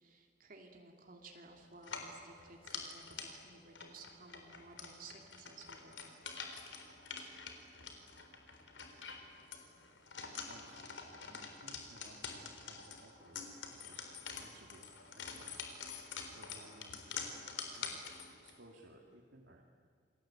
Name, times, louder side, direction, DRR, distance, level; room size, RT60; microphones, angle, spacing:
voice 1, 0.0-6.3, right 3 dB, 50° right, 2 dB, 2.8 m, -56 dB
sound 1, 1.8-18.6, left 5 dB, 90° left, 3.9 m, -47 dB
voice 2, 10.5-14.9 15.1-15.5 16.3-17.4 17.7-18.0 18.4-19.6, right 1 dB, 80° right, -1 dB, 2.6 m, -60 dB
28.5 x 22.0 x 9.0 m, 2.1 s
head